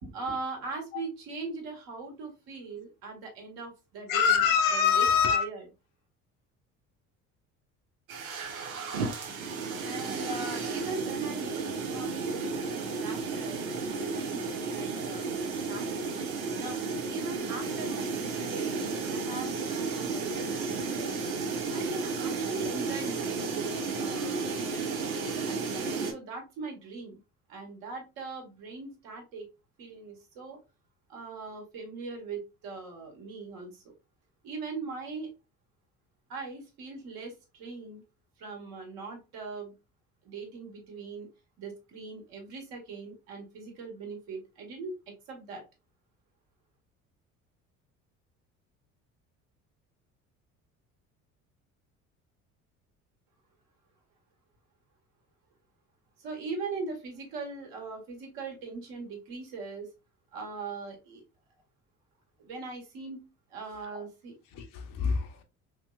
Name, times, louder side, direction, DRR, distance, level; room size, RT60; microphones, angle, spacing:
voice 1, 0.0-4.4 4.7-5.6 9.8-13.6 13.9-16.0 16.5-21.1 21.7-23.6 23.9-24.5 25.4-27.2 27.5-29.5 29.8-30.6 31.1-33.8 34.4-35.3 36.3-38.0 38.4-39.7 40.2-41.3 41.6-45.0 45.3-45.6 56.2-59.9 60.3-61.2 62.4-63.2 63.5-64.3, right 4 dB, 60° right, 1.4 m, -40 dB
voice 2, 4.1-5.5 63.8-64.1 64.5-65.4, left 7 dB, 50° left, 0.7 m, -25 dB
sound 1, 8.1-26.1, right 4 dB, 80° right, 0.7 m, -33 dB
3.1 x 3.0 x 2.3 m
figure-of-eight pair, 60°, 41 cm